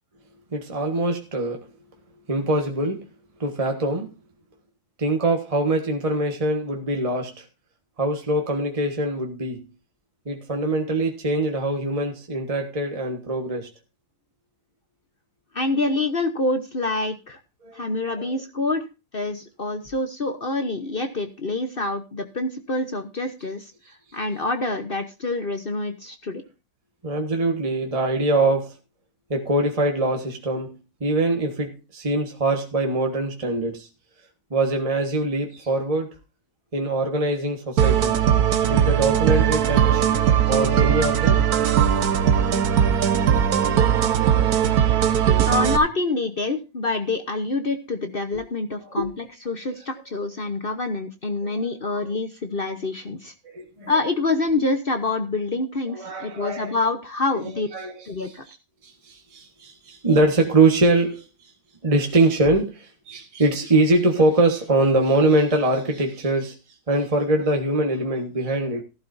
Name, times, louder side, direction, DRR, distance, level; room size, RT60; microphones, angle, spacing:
voice 1, 0.5-1.7 2.3-3.1 3.4-4.1 5.0-7.4 8.0-9.7 10.2-13.7 17.6-18.3 27.0-28.7 29.3-33.9 34.5-36.1 36.7-38.2 38.7-40.1 40.5-41.4 42.1-42.3 44.7-44.8 45.0-45.2 48.3-48.4 48.8-49.1 51.4-51.5 51.9-52.0 53.4-53.9 55.9-56.7 57.3-57.4 57.7-58.0 58.2-58.3 58.8-61.5 61.8-66.6 66.9-68.8, right 2 dB, 25° right, 1.5 m, -23 dB
voice 2, 15.5-17.4 17.7-18.8 19.1-23.7 24.1-26.4 45.5-53.3 53.9-57.7 58.1-58.4, left 2 dB, 40° left, 1.1 m, -26 dB
sound 1, 37.8-45.8, right 9 dB, 70° right, 1.4 m, -19 dB
15.0 x 12.0 x 2.7 m
omnidirectional pair, 1.7 m